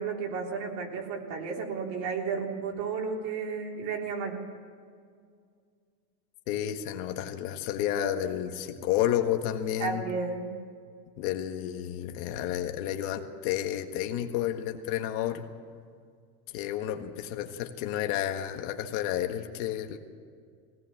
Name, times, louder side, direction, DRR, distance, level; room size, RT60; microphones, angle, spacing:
voice 1, 0.0-4.5 9.8-10.7, right 5 dB, 55° right, 0 dB, 3.9 m, -33 dB
voice 2, 6.5-10.0 11.2-15.5 16.5-20.0, left 11 dB, 55° left, 5 dB, 1.7 m, -31 dB
20.0 x 18.0 x 7.3 m, 2.1 s
supercardioid pair, 145°, 48 cm